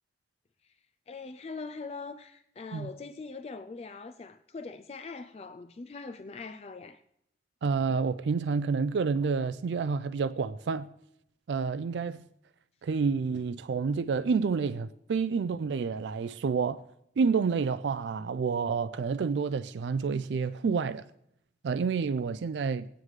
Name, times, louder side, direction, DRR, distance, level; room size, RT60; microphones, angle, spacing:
voice 1, 1.1-7.0, left 4 dB, 35° left, 0.4 m, -42 dB
voice 2, 7.6-10.9 11.5-12.2 12.8-16.8 17.2-21.0 21.6-22.9, right 5 dB, 85° right, 0.4 m, -29 dB
20.5 x 9.1 x 3.2 m
head